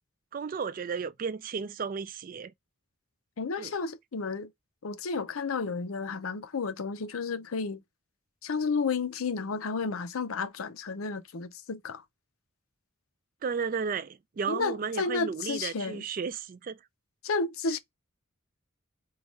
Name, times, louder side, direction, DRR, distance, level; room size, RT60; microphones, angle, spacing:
voice 1, 0.3-2.5 3.6-3.7 13.4-16.8, right 5 dB, 40° right, 0.3 m, -34 dB
voice 2, 3.4-4.5 4.8-7.8 8.4-12.0 14.5-16.0 17.2-17.8, left 4 dB, 85° left, 0.6 m, -32 dB
4.6 x 2.3 x 4.0 m
head